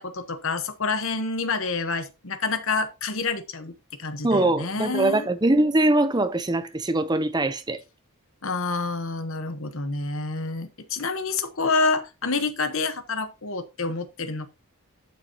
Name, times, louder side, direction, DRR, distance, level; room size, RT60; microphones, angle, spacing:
voice 1, 0.0-5.3 8.4-14.5, left 3 dB, 60° left, 1.2 m, -28 dB
voice 2, 4.2-7.8, right 2 dB, 20° right, 0.8 m, -22 dB
11.5 x 5.9 x 2.9 m
head